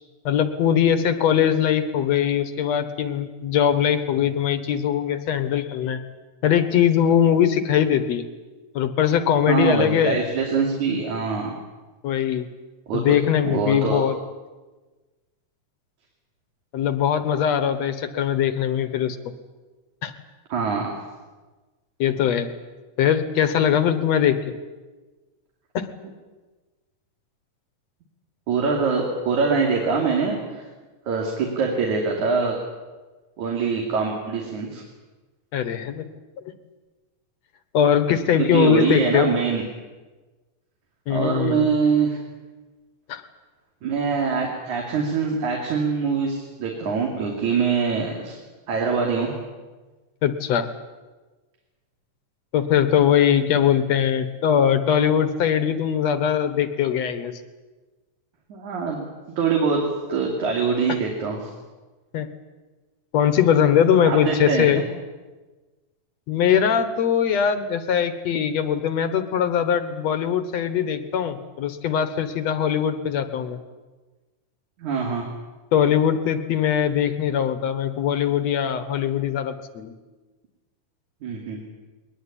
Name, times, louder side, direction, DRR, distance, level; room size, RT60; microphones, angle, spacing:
voice 1, 0.3-6.0 6.4-8.3 8.7-10.2 12.0-12.5 12.9-14.2 16.7-19.3 20.0-20.1 22.0-22.5 23.0-24.4 25.7-25.9 35.5-36.1 37.7-39.3 41.1-41.7 43.1-43.2 50.2-50.7 52.5-57.4 62.1-62.3 63.1-64.8 66.3-73.6 75.7-79.9, left 9 dB, 65° left, 10 dB, 2.2 m, -21 dB
voice 2, 9.5-11.5 12.9-13.2 13.4-14.0 20.5-21.0 28.5-30.7 31.1-32.6 33.4-34.8 38.4-39.6 41.1-42.2 43.8-48.4 48.7-49.3 58.5-59.1 59.4-61.4 64.0-64.8 74.8-75.3 81.2-81.6, right 5 dB, 65° right, 0 dB, 4.1 m, -23 dB
21.0 x 20.0 x 9.9 m, 1.3 s
omnidirectional pair, 3.6 m